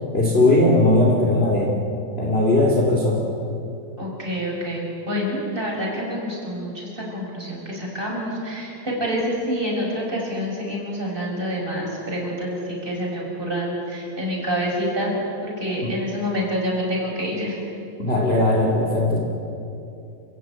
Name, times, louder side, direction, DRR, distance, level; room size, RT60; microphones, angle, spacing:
voice 1, 0.1-1.7 2.2-3.2 15.8-15.9 18.0-19.2, left 2 dB, 30° left, -2 dB, 1.1 m, -18 dB
voice 2, 4.0-17.6, equal, 10° right, -3 dB, 5.8 m, -27 dB
29.5 x 15.0 x 8.9 m, 2.8 s
omnidirectional pair, 5.7 m